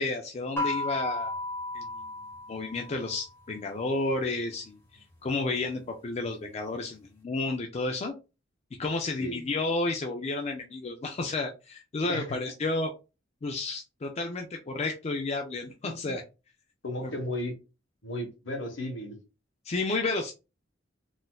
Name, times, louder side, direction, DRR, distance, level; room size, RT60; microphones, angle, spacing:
voice 1, 0.0-1.4 1.7-1.9 2.5-4.8 5.2-8.2 8.8-12.9 13.4-16.2 17.0-17.1 19.7-20.3, left 3 dB, 35° left, 0.4 m, -31 dB
sound 1, 0.6-3.3, left 2 dB, 15° left, 0.9 m, -34 dB
voice 2, 9.0-9.4 12.1-12.4 15.8-16.1 16.8-17.6 18.0-19.2, left 1 dB, 65° left, 1.0 m, -35 dB
4.0 x 2.5 x 2.2 m
head